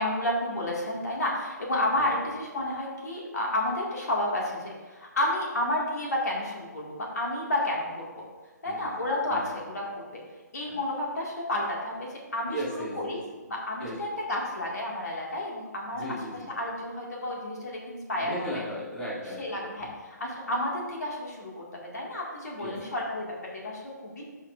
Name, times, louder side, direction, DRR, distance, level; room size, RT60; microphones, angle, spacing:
voice 1, 0.0-8.2 8.6-10.2 10.5-13.2 13.5-16.0 16.6-18.6 19.4-24.2, left 1 dB, 65° left, -2 dB, 1.8 m, -31 dB
voice 2, 12.5-13.1 13.8-13.9 15.9-16.4 18.2-19.6 22.6-22.8, equal, 10° left, -9 dB, 2.2 m, -36 dB
12.5 x 5.6 x 2.4 m, 1.3 s
figure-of-eight pair, 145°, 10 cm